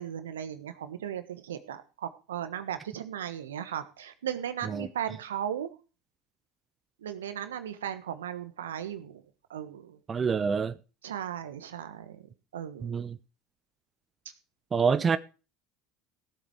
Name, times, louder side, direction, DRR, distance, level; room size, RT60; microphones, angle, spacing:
voice 1, 0.0-5.7 7.0-9.2 9.5-10.0 11.0-12.2 12.5-13.0, right 10 dB, 80° right, 1.4 m, -36 dB
voice 2, 10.1-10.7 12.8-13.2 14.7-15.2, right 6 dB, 30° right, 0.8 m, -26 dB
16.5 x 8.1 x 4.9 m
hypercardioid pair, 70°, 0 cm